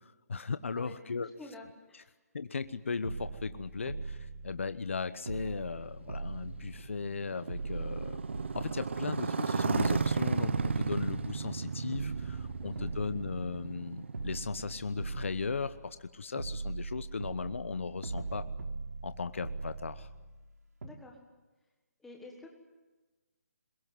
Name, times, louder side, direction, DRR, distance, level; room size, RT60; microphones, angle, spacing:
voice 1, 0.3-1.3 2.3-8.2 8.5-18.5 19.0-20.1, left 4 dB, 50° left, 12 dB, 0.9 m, -37 dB
voice 2, 1.2-2.1 12.6-12.9 20.8-21.2 22.0-22.5, left 2 dB, ahead, 1 dB, 1.4 m, -50 dB
sound 1, 2.6-2.7 3.0-4.9 5.3-7.2 7.5-9.3 9.7-11.6 11.9-13.8 14.1-16.0 16.4-20.5 20.8-20.9, right 3 dB, 75° right, 3.6 m, -41 dB
Motorcycle, 5.6-15.4, right 5 dB, 45° right, 1.0 m, -34 dB
22.0 x 22.0 x 9.3 m, 1.2 s
hypercardioid pair, 180°, 9 cm